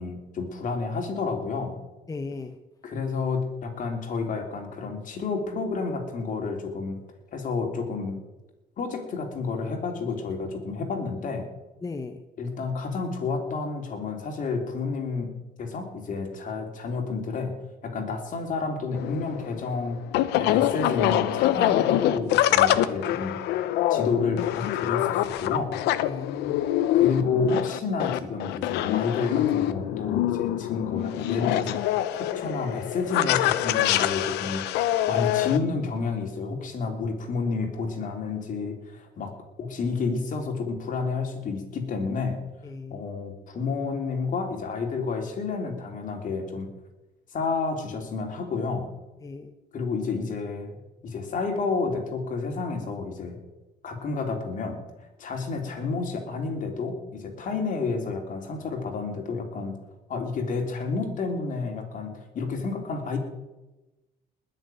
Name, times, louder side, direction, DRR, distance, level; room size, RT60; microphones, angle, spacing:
voice 1, 0.0-1.8 2.8-7.0 7.3-8.2 8.8-11.5 12.4-15.3 15.6-17.6 17.8-20.0 20.4-23.4 23.9-25.8 26.9-34.6 35.1-39.3 39.6-42.4 42.9-46.7 47.3-48.9 49.7-50.7 51.0-53.4 53.8-54.8 55.2-59.8 60.1-63.2, left 4 dB, 50° left, 4 dB, 3.6 m, -30 dB
voice 2, 2.1-2.5 11.8-12.2 26.0-26.6 42.6-43.0 49.2-49.5, left 3 dB, 20° left, 7 dB, 1.0 m, -36 dB
sound 1, 18.9-35.6, left 13 dB, 90° left, 0.9 m, -25 dB
20.0 x 6.9 x 9.3 m, 1.1 s
cardioid pair, 110°, 17 cm